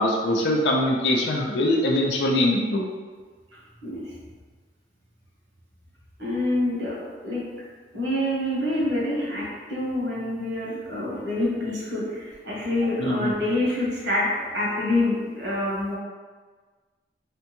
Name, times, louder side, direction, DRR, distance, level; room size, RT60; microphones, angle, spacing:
voice 1, 0.0-2.9 13.0-13.3, left 1 dB, 75° left, -1 dB, 0.5 m, -22 dB
voice 2, 3.5-4.1 6.2-7.4 7.9-14.3 14.5-15.9, left 1 dB, 75° right, -6 dB, 1.1 m, -26 dB
3.6 x 2.2 x 2.9 m, 1.4 s
head